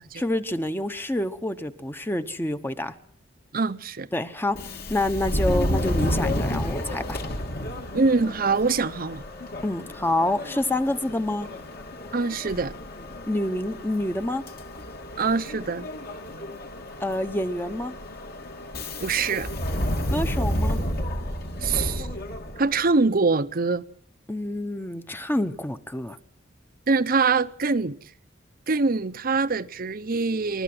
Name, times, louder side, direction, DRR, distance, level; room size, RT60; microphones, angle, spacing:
voice 1, 0.2-2.9 4.1-4.6 4.9-7.2 9.6-11.5 13.2-14.4 17.0-17.9 20.1-20.8 24.3-26.2, left 1 dB, 10° left, 1.0 m, -27 dB
voice 2, 3.5-4.1 7.9-9.2 12.1-12.8 15.2-15.9 19.0-19.6 21.6-22.1 22.6-23.8 26.9-28.0 28.7-30.6, right 4 dB, 50° right, 0.8 m, -24 dB
Subway metro underground, 4.5-22.8, left 1 dB, 55° left, 2.5 m, -31 dB
29.0 x 13.0 x 7.8 m
head